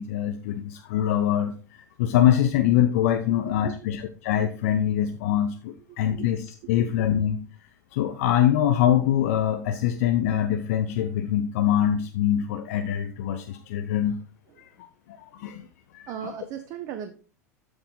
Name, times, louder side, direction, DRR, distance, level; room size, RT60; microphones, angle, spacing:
voice 1, 0.0-7.4 7.9-14.2 15.1-15.7 15.9-16.1, left 10 dB, 55° left, 8 dB, 0.8 m, -24 dB
voice 2, 5.9-6.3 6.8-6.9 14.5-14.7 16.1-17.1, right 9 dB, 45° right, 7 dB, 1.0 m, -37 dB
12.5 x 4.9 x 3.9 m, 0.39 s
figure-of-eight pair, 85°, 9 cm